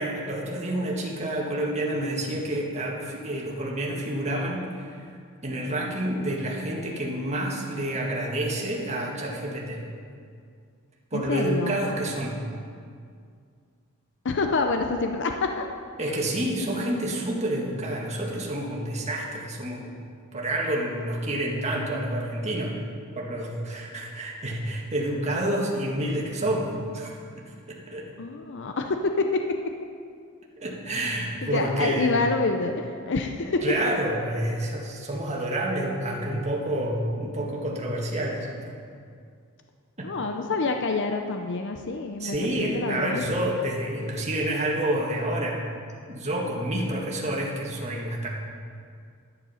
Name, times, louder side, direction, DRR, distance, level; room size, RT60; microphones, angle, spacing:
voice 1, 0.0-5.1 5.4-9.8 11.1-12.4 16.0-19.9 20.3-22.8 23.1-27.2 27.5-28.1 30.6-32.1 33.6-38.7 40.0-40.1 42.2-45.6 46.1-48.3, right 1 dB, 30° right, -2 dB, 1.8 m, -29 dB
voice 2, 11.1-11.8 14.2-15.7 28.2-29.2 31.4-33.6 40.0-43.2, left 3 dB, 55° left, 5 dB, 0.6 m, -27 dB
11.0 x 10.0 x 5.7 m, 2.2 s
head